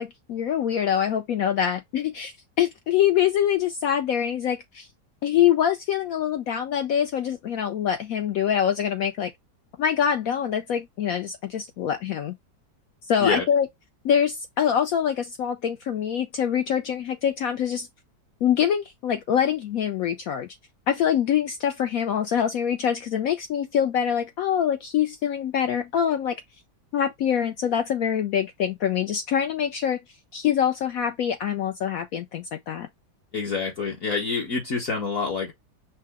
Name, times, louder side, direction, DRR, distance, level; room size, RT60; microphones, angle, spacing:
voice 1, 0.0-4.9 5.2-9.3 9.8-12.3 13.1-13.7 14.0-17.9 18.4-20.5 20.9-26.4 26.9-30.0 30.3-32.9, left 9 dB, 75° left, 0.8 m, -24 dB
voice 2, 33.3-35.5, left 4 dB, 55° left, 1.1 m, -26 dB
5.7 x 2.1 x 3.4 m
omnidirectional pair, 2.0 m